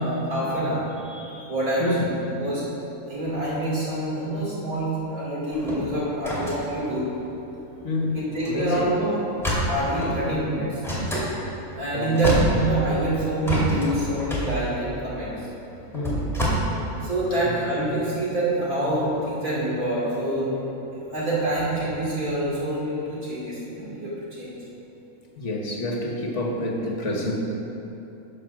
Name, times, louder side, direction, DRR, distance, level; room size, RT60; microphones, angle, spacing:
voice 1, 0.0-7.2 8.1-10.8 11.8-15.5 17.0-24.5, right 1 dB, 80° right, -6 dB, 3.0 m, -26 dB
sound 1, 5.5-7.9 8.4-8.5 8.8-8.9 9.4-10.2 10.8-11.3 11.8-11.9 12.1-13.1 13.4-16.5, equal, ahead, 2.2 m, -27 dB
voice 2, 7.8-8.2 8.5-8.9 11.9-12.2 15.9-16.2 17.4-17.6 25.4-27.4, left 1 dB, 60° left, 0 dB, 1.5 m, -27 dB
11.0 x 5.3 x 6.3 m, 3.0 s
omnidirectional pair, 1.5 m